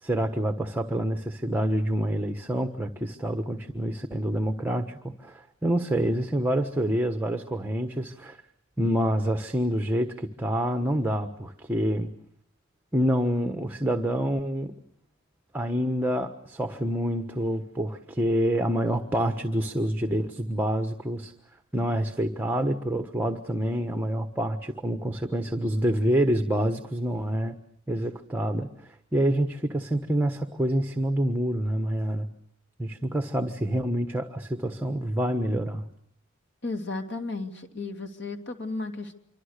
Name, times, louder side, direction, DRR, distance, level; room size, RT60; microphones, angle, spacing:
voice 1, 0.0-8.4 8.8-12.1 12.9-14.7 15.5-21.3 21.7-27.5 27.9-32.3 32.8-35.9, right 1 dB, 10° right, 7 dB, 1.3 m, -27 dB
voice 2, 36.6-39.1, left 3 dB, 60° left, 6 dB, 2.9 m, -34 dB
27.0 x 25.0 x 6.8 m, 0.73 s
head